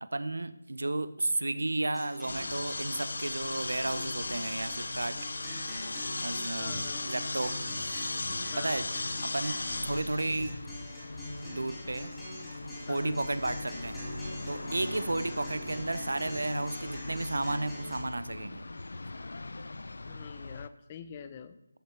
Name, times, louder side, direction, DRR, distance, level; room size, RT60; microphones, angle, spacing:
voice 1, 0.0-5.2 6.2-6.7 7.0-8.1 8.6-8.9 9.2-10.6 11.5-12.1 12.9-14.1 14.5-18.7, right 2 dB, 75° right, 14 dB, 0.9 m, -33 dB
Acoustic guitar, 1.9-18.0, left 1 dB, 5° left, 4.2 m, -43 dB
sound 1, 2.3-20.7, left 3 dB, 65° left, 0.6 m, -39 dB
sound 2, 6.2-13.9 14.3-17.8 18.1-19.0, equal, 25° right, 3.8 m, -50 dB
voice 2, 6.6-7.0 8.5-8.9 12.9-13.2 20.1-21.6, left 7 dB, 25° left, 12 dB, 0.7 m, -45 dB
13.5 x 8.7 x 4.7 m, 0.86 s
figure-of-eight pair, 165°, 0 cm